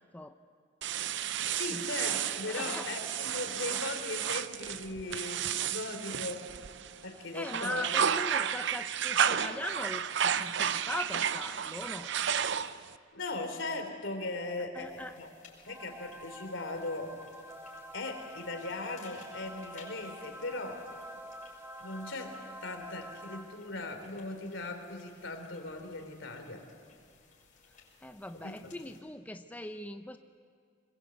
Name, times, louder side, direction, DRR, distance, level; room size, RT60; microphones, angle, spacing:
sound 1, 0.8-7.0 7.4-12.9, right 8 dB, 65° right, 0.6 m, -32 dB
voice 1, 1.5-6.5 7.0-7.9 13.1-15.3 15.7-17.2 17.9-20.8 21.8-26.7 28.3-28.7, left 2 dB, 70° left, 5 dB, 3.5 m, -39 dB
voice 2, 2.4-2.9 7.1-12.1 14.7-15.2 28.0-30.2, left 1 dB, 10° left, 7 dB, 0.6 m, -40 dB
sound 2, 14.8-29.0, left 4 dB, 45° left, 6.2 m, -59 dB
sound 3, 15.7-23.9, equal, 15° right, 1.4 m, -47 dB
25.5 x 22.0 x 8.1 m, 2.1 s
head